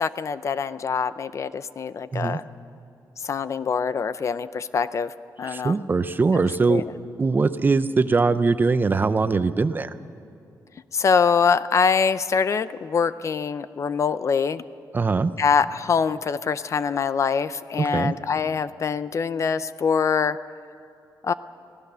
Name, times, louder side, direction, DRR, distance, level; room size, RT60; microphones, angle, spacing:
voice 1, 0.0-2.4 3.2-5.1 5.4-5.8 6.7-6.8 10.9-14.6 15.4-20.4 21.2-21.3, left 6 dB, 45° left, 15 dB, 0.5 m, -24 dB
voice 2, 5.5-6.8 7.2-9.9 14.9-15.3 17.8-18.1, right 4 dB, 30° right, 12 dB, 0.6 m, -21 dB
25.0 x 17.5 x 6.8 m, 2.7 s
wide cardioid pair, 145°, 7 cm